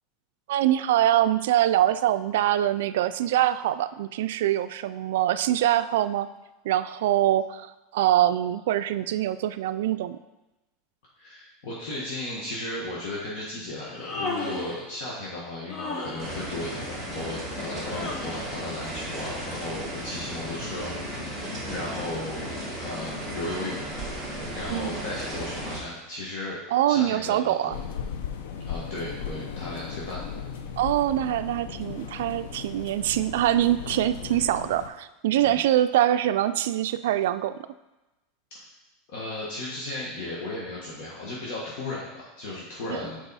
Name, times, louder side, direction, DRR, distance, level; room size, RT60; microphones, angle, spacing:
voice 1, 0.5-6.3 6.6-10.2 24.7-25.0 26.7-27.8 30.8-37.6 42.9-43.1, right 12 dB, 75° right, 11 dB, 0.3 m, -24 dB
voice 2, 11.2-23.8 24.5-26.6 26.9-27.8 28.6-30.2 30.5-30.7 35.4-35.6 39.1-43.2, left 2 dB, 55° left, -5 dB, 1.4 m, -35 dB
Human voice, 13.8-14.9 15.7-16.4 17.9-18.6, left 3 dB, 30° left, 0.8 m, -34 dB
sound 1, 16.2-25.8, equal, 5° left, 1.9 m, -35 dB
sound 2, 27.7-34.9, left 7 dB, 85° left, 0.7 m, -37 dB
6.9 x 4.7 x 4.2 m, 1.0 s
supercardioid pair, 175°, 0 cm